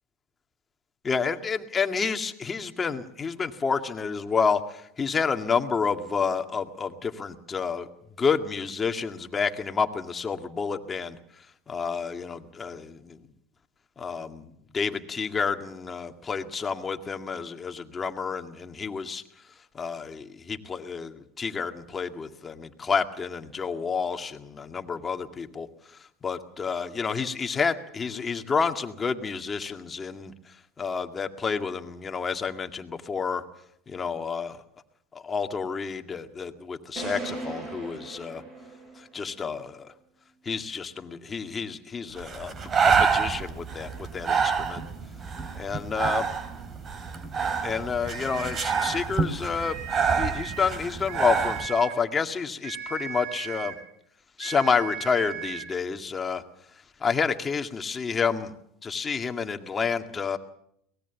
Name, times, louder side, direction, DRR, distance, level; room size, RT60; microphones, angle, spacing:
voice 1, 1.0-7.9 8.2-11.2 11.7-13.2 14.0-19.2 19.7-25.7 26.2-30.3 30.8-33.4 33.9-34.6 35.1-38.4 39.0-39.9 40.5-44.8 45.6-46.3 47.6-49.8 50.2-53.8 54.4-56.4 57.0-58.5 58.8-60.4, left 5 dB, 25° left, 6 dB, 2.0 m, -29 dB
sound 1, 37.0-39.3, right 3 dB, 50° right, 7.3 m, -38 dB
Breathing, 42.2-51.7, right 6 dB, 35° right, 2.6 m, -27 dB
sound 2, 48.0-49.1 49.5-50.8 51.1-52.0 52.6-53.9 54.4-55.7, right 10 dB, 70° right, 4.1 m, -38 dB
23.5 x 19.0 x 7.1 m, 0.73 s
hypercardioid pair, 95°, 0 cm